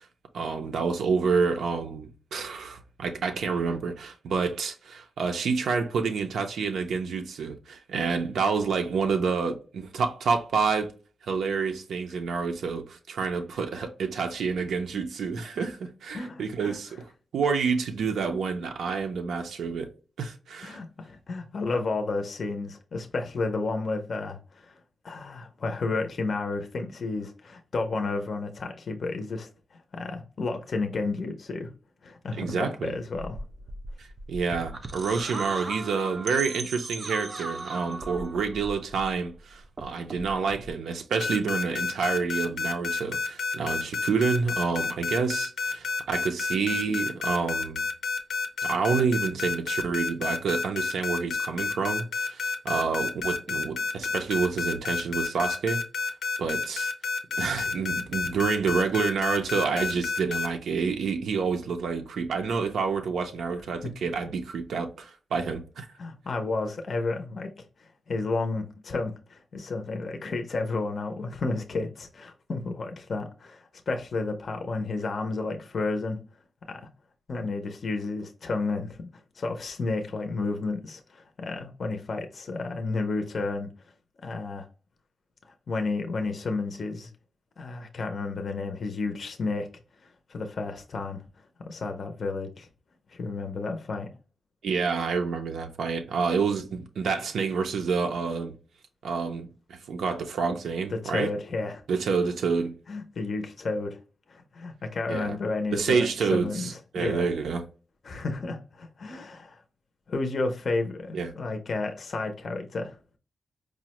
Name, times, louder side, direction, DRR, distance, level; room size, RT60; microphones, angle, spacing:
voice 1, 0.3-10.9 11.3-17.1 17.3-19.9 20.2-20.8 32.4-32.9 34.0-47.8 48.6-55.8 56.4-56.9 57.4-65.9 94.6-98.5 99.0-101.3 101.9-102.7 105.1-105.4 105.7-107.6 111.1-111.3, right 5 dB, 90° right, 0.5 m, -28 dB
voice 2, 16.1-16.8 20.6-24.7 25.0-31.7 32.0-33.4 66.0-76.2 76.7-76.8 77.3-79.1 79.4-83.7 84.2-84.7 85.4-87.1 87.6-89.7 90.0-91.2 91.6-92.7 93.1-94.1 100.9-101.8 102.9-104.0 104.3-107.3 108.0-109.6 110.1-113.0, left 3 dB, 45° left, 0.5 m, -32 dB
sound 1, 33.1-39.4 39.6-40.7, right 2 dB, 35° right, 0.4 m, -38 dB
Mini Airplane Alarm, 41.2-60.5, left 4 dB, 90° left, 0.6 m, -29 dB
4.8 x 2.0 x 2.9 m
wide cardioid pair, 160°, 0 cm